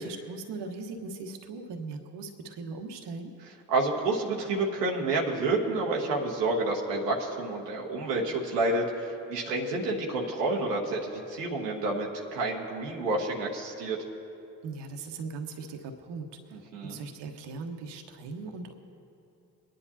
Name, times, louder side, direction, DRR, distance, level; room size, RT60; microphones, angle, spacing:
voice 1, 0.0-3.3 14.6-18.7, right 4 dB, 60° right, 5 dB, 1.2 m, -39 dB
voice 2, 3.7-14.0 16.5-17.0, right 2 dB, 90° right, -2 dB, 1.1 m, -29 dB
23.0 x 10.0 x 2.8 m, 2.7 s
hypercardioid pair, 45°, 47 cm